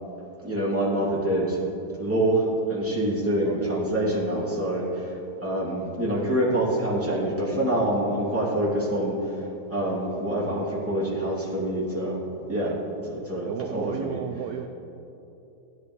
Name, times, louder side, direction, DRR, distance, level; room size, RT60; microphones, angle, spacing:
voice 1, 0.4-1.6 2.0-5.1 5.4-9.3 9.7-12.2 12.5-12.7 13.1-14.2, right 1 dB, 5° right, -7 dB, 2.7 m, -26 dB
voice 2, 3.4-3.8 5.6-5.9 12.5-12.8 13.4-14.7, right 9 dB, 70° right, 6 dB, 0.9 m, -34 dB
16.5 x 10.5 x 3.3 m, 2.9 s
omnidirectional pair, 2.1 m